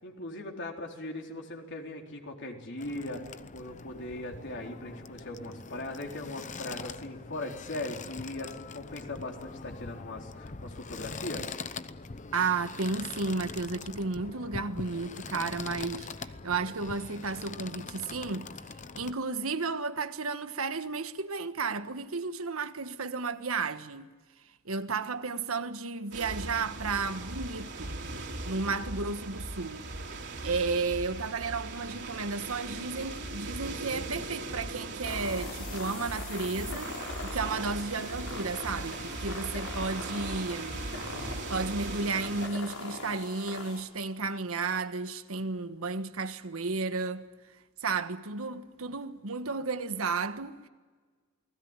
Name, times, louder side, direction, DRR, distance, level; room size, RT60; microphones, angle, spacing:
voice 1, 0.0-3.2 3.5-11.6, left 2 dB, 55° left, 4.1 m, -39 dB
sound 1, 2.8-19.1, left 4 dB, 35° left, 0.9 m, -43 dB
voice 2, 12.3-18.5 18.9-24.1 24.6-28.0 28.4-29.9 30.4-40.9 41.2-47.3 47.8-50.7, right 4 dB, 80° right, 1.4 m, -33 dB
sound 2, 26.1-42.5, right 2 dB, 55° right, 3.6 m, -39 dB
sound 3, 35.0-43.8, left 3 dB, 80° left, 5.7 m, -42 dB
29.5 x 20.0 x 9.0 m
head